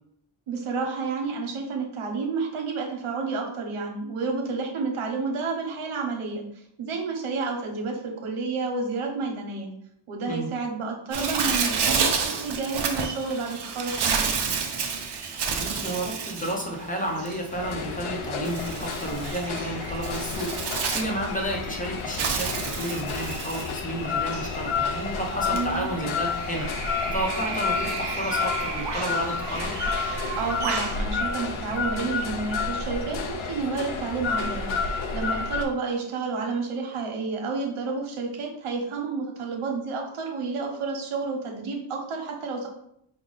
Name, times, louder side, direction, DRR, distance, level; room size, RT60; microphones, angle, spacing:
voice 1, 0.5-6.4 6.8-9.7 10.1-14.4 25.5-25.9 30.3-34.7 35.1-42.7, right 4 dB, 90° right, 2 dB, 1.0 m, -30 dB
Bird, 11.1-31.0, right 5 dB, 55° right, 0.7 m, -31 dB
voice 2, 15.6-29.8, right 1 dB, 15° left, 0 dB, 0.8 m, -32 dB
sound 1, 17.5-35.6, left 5 dB, 75° left, 0.7 m, -30 dB
4.9 x 2.2 x 4.0 m, 0.73 s
wide cardioid pair, 130°, 49 cm